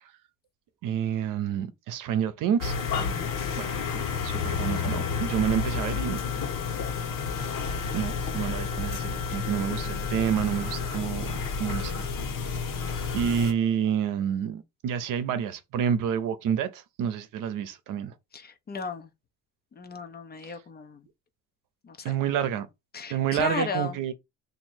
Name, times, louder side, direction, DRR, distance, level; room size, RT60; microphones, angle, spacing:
voice 1, 0.8-2.7 3.6-6.2 7.4-7.6 7.9-11.3 11.6-12.5 13.1-18.1 20.5-20.6 22.0-22.7 23.1-24.1, right 9 dB, 60° right, 0.7 m, -29 dB
sound 1, 2.6-13.5, left 5 dB, 60° left, 1.4 m, -30 dB
voice 2, 3.0-3.3 18.3-19.1 19.8-21.0 21.8-22.2 22.9-24.0, left 4 dB, 25° left, 0.6 m, -35 dB
3.0 x 2.7 x 4.4 m
cardioid pair, 135°, 36 cm